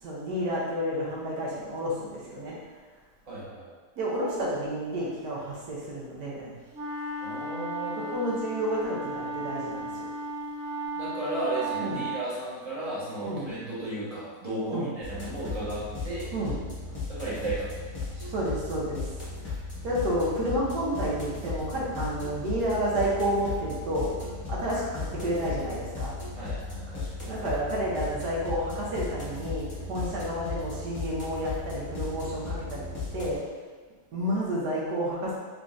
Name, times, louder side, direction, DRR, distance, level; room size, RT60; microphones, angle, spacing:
voice 1, 0.0-2.6 4.0-6.5 8.0-10.0 11.8-12.0 13.2-13.5 14.6-14.9 16.3-16.6 18.3-19.1 19.8-26.1 27.3-33.4 34.1-35.4, equal, 75° right, -5 dB, 1.5 m, -30 dB
voice 2, 3.3-3.7 7.2-8.1 10.9-16.2 17.1-18.2 26.4-27.3, right 2 dB, 25° right, -9 dB, 1.0 m, -34 dB
sound 1, 6.7-12.2, right 1 dB, 50° right, 1.2 m, -35 dB
sound 2, 15.0-33.4, left 3 dB, 25° left, 0.7 m, -36 dB
3.7 x 3.5 x 2.5 m, 1.4 s
omnidirectional pair, 1.8 m